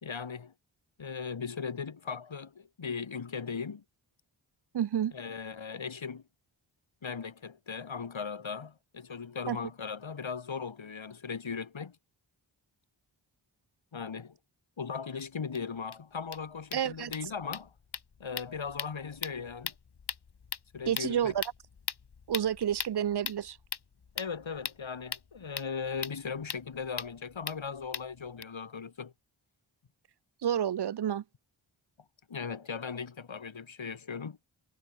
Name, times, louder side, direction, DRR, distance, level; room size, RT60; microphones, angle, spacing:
voice 1, 0.0-0.5 1.0-3.8 5.1-6.2 7.0-12.0 13.9-14.4 14.8-17.7 18.2-19.7 20.7-21.3 24.2-29.1 32.3-34.4, left 5 dB, 70° left, 3.6 m, -38 dB
voice 2, 4.7-5.1 9.5-9.6 16.7-17.1 20.9-21.4 22.3-23.6 30.4-31.2, right 9 dB, 55° right, 0.6 m, -29 dB
sound 1, 15.2-15.3 15.5-15.6 15.9-16.0 16.2-28.4, left 6 dB, 55° left, 1.6 m, -41 dB
cardioid pair, 50°, 48 cm